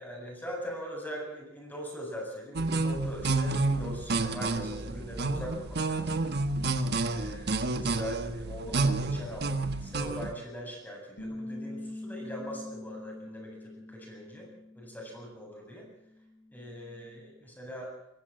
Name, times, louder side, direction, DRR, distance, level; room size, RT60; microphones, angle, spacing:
voice 1, 0.0-6.2 6.9-14.5 14.7-15.9 16.5-17.9, equal, 10° left, 0 dB, 7.9 m, -41 dB
sound 1, 2.5-10.3, right 3 dB, 55° right, 1.4 m, -29 dB
Bass guitar, 11.2-17.4, left 1 dB, 55° left, 7.1 m, -44 dB
23.0 x 16.0 x 7.7 m, 0.84 s
head